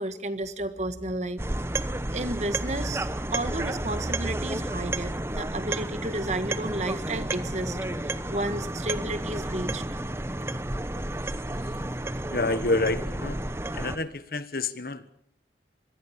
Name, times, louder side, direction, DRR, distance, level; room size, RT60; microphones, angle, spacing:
voice 1, 0.0-1.4 2.1-9.8, right 1 dB, 40° right, 11 dB, 1.6 m, -32 dB
sound 1, 1.4-14.0, right 1 dB, 15° right, 1.0 m, -31 dB
voice 2, 12.3-13.4 13.7-15.1, left 2 dB, 55° left, 14 dB, 1.3 m, -28 dB
25.5 x 20.5 x 7.4 m, 0.66 s
head